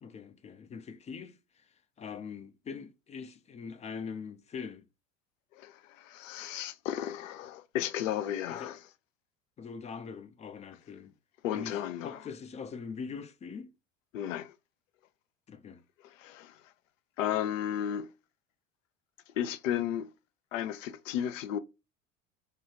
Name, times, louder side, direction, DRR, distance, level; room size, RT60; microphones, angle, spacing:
voice 1, 0.0-1.7 2.0-4.8 8.5-8.8 9.6-11.1 11.5-13.7 15.5-15.8, left 6 dB, 20° left, 0.4 m, -42 dB
voice 2, 5.6-8.8 11.4-12.2 14.1-14.5 16.0-16.6 17.2-18.1 19.4-20.1 20.5-21.6, left 10 dB, 70° left, 0.6 m, -34 dB
4.7 x 2.3 x 2.8 m
hypercardioid pair, 75°, 40 cm